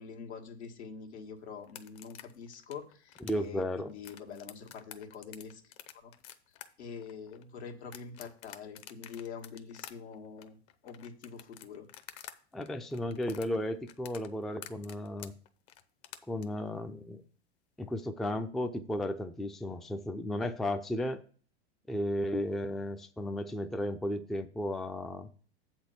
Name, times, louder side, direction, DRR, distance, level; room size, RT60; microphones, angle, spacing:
voice 1, 0.0-5.6 6.0-6.1 6.8-10.6 10.8-11.9, left 6 dB, 85° left, 2 dB, 1.7 m, -45 dB
sound 1, 1.6-12.4 12.6-16.4, left 11 dB, 45° left, 0.9 m, -49 dB
voice 2, 3.2-3.9 12.5-15.3 16.3-17.2 17.8-21.2 21.9-25.3, left 1 dB, ahead, 6 dB, 0.4 m, -34 dB
7.6 x 4.4 x 7.0 m, 0.43 s
hypercardioid pair, 105°, 32 cm